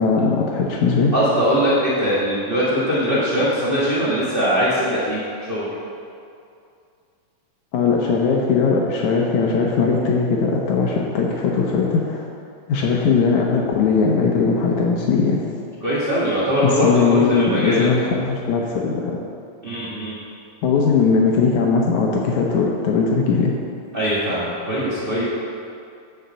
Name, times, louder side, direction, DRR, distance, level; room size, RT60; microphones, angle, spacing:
voice 1, 0.0-1.1 7.7-12.3 12.7-15.4 16.6-19.2 20.6-23.5, left 5 dB, 75° left, -1 dB, 1.9 m, -19 dB
voice 2, 1.1-5.7 15.8-17.9 19.6-20.2 23.9-25.3, equal, 60° right, -10 dB, 0.5 m, -21 dB
8.9 x 5.7 x 6.8 m, 2.5 s
omnidirectional pair, 4.0 m